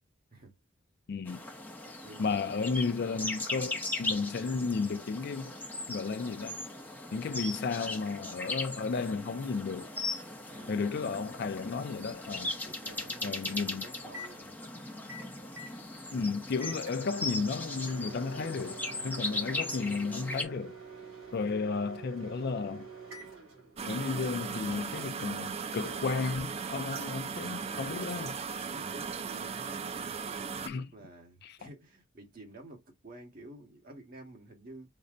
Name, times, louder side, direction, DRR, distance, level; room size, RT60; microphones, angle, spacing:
voice 1, 1.1-1.4 2.2-5.5 5.9-6.6 7.1-9.9 10.7-12.5 13.2-13.9 16.1-18.8 19.0-20.8 21.3-22.9 23.8-28.4 30.7-30.9 31.4-31.5, left 4 dB, 55° left, 0.4 m, -33 dB
sound 1, 1.3-20.4, left 2 dB, 10° left, 0.7 m, -38 dB
voice 2, 2.0-2.3 10.5-10.9 12.6-14.5 27.4-27.8 28.7-35.0, right 1 dB, 45° right, 1.3 m, -51 dB
Microwave oven, 11.8-27.2, right 2 dB, 90° right, 1.5 m, -49 dB
sound 2, 23.8-30.7, right 5 dB, 30° right, 0.3 m, -37 dB
5.3 x 2.1 x 2.5 m
head